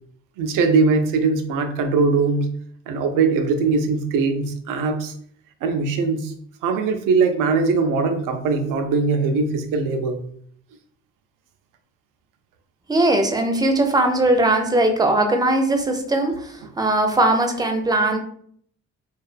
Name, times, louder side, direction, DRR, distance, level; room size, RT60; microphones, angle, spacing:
voice 1, 0.4-2.5 2.9-5.1 5.6-6.3 6.6-10.2, right 4 dB, 75° right, 7 dB, 0.5 m, -21 dB
voice 2, 12.9-18.2, right 2 dB, 10° right, 5 dB, 0.5 m, -19 dB
2.4 x 2.3 x 2.4 m, 0.62 s
supercardioid pair, 65°, 32 cm